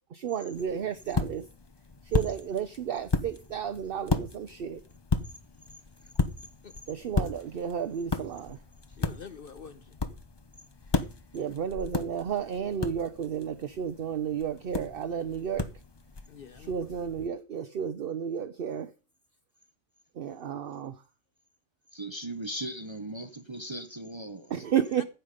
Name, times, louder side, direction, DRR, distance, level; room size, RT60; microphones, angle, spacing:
voice 1, 0.1-1.5 2.0-4.8 6.9-8.6 11.3-15.7 16.7-18.9 20.2-21.0 24.5-25.0, right 8 dB, 55° right, 0.9 m, -32 dB
sound 1, 0.5-17.3, left 3 dB, 25° left, 0.6 m, -35 dB
voice 2, 8.9-10.0 16.3-17.1 24.7-25.0, left 6 dB, 55° left, 0.9 m, -46 dB
voice 3, 21.9-24.5, right 1 dB, 25° right, 0.8 m, -38 dB
14.5 x 8.2 x 5.2 m
omnidirectional pair, 1.3 m